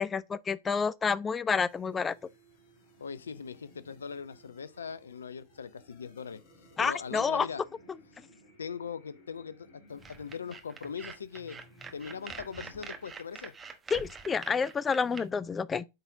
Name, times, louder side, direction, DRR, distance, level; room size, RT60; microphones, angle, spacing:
voice 1, 0.0-2.1 6.8-7.5 13.9-15.9, left 5 dB, 20° left, 0.3 m, -29 dB
sound 1, 1.4-13.2, equal, 45° left, 2.8 m, -59 dB
voice 2, 3.0-6.4 6.8-7.6 8.6-11.6 11.9-13.5, left 6 dB, 70° left, 0.5 m, -40 dB
sound 2, 10.0-15.2, right 5 dB, 15° right, 1.1 m, -45 dB
8.0 x 4.0 x 4.9 m
figure-of-eight pair, 90°, 0 cm